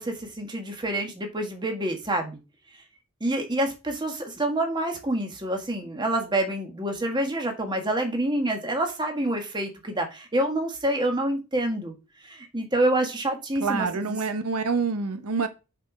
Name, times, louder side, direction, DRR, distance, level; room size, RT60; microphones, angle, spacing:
voice 1, 0.0-2.4 3.2-11.9 12.2-14.2, right 1 dB, 20° right, 1.6 m, -27 dB
voice 2, 13.6-15.5, right 4 dB, 85° right, 0.8 m, -26 dB
7.4 x 4.5 x 5.0 m
head